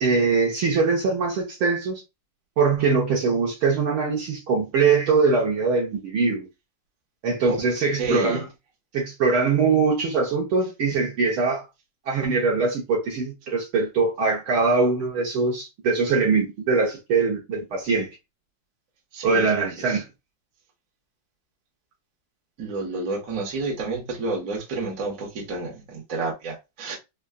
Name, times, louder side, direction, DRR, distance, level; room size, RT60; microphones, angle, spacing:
voice 1, 0.0-2.0 2.6-6.5 7.2-8.5 8.9-11.6 12.1-18.1 19.2-20.1, right 4 dB, 70° right, 1.3 m, -22 dB
voice 2, 8.0-8.4 19.1-20.0 22.6-26.9, right 3 dB, 45° right, 1.0 m, -30 dB
5.1 x 2.3 x 2.4 m
omnidirectional pair, 3.6 m